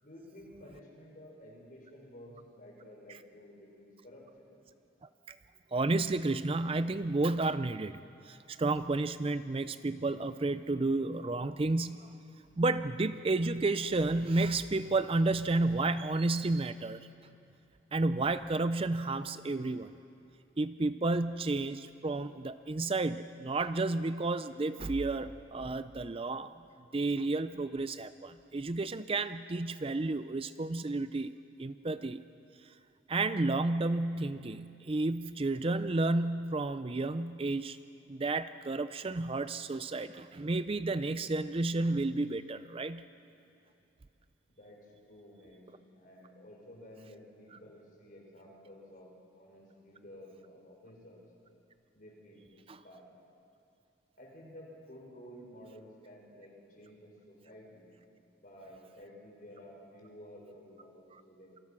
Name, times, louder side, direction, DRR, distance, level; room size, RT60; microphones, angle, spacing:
voice 1, 0.0-4.5 44.5-51.2 51.9-53.2 54.1-57.9 58.4-61.6, equal, 45° left, -1 dB, 5.9 m, -53 dB
voice 2, 5.7-8.0 8.3-12.2 12.6-17.0 17.9-19.9 20.6-26.5 26.9-31.3 31.6-32.2 33.1-37.8 38.1-43.1 52.7-52.8, right 2 dB, 30° right, 12 dB, 0.5 m, -31 dB
28.0 x 23.5 x 6.1 m, 2.7 s
head